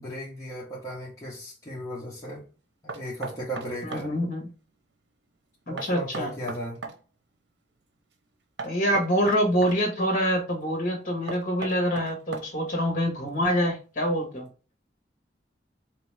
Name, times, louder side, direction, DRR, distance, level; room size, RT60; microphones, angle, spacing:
voice 1, 0.0-2.4 2.8-4.1 5.7-6.8, equal, 20° left, 1.1 m, -36 dB
Knock, 2.9-4.1 5.8-7.0 8.6-9.8 11.3-12.7, right 3 dB, 75° right, 0.7 m, -37 dB
voice 2, 3.8-4.5 5.7-6.3 8.6-14.5, equal, 45° left, 1.5 m, -26 dB
4.1 x 3.0 x 3.3 m
head